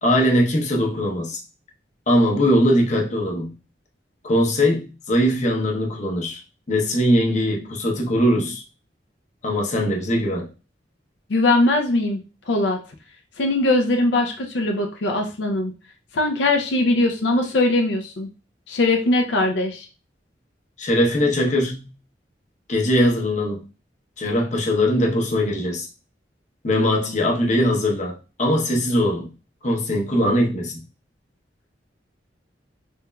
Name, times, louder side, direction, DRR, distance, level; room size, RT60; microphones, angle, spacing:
voice 1, 0.0-1.4 2.1-3.5 4.2-6.4 6.7-8.6 9.4-10.5 20.8-21.9 22.7-23.6 24.2-25.9 26.6-29.3 29.6-30.8, equal, 45° left, 0.8 m, -21 dB
voice 2, 11.3-12.2 12.5-12.8 13.4-15.7 16.1-18.3 18.7-19.9, left 2 dB, 80° left, 0.5 m, -20 dB
3.5 x 3.0 x 2.2 m
head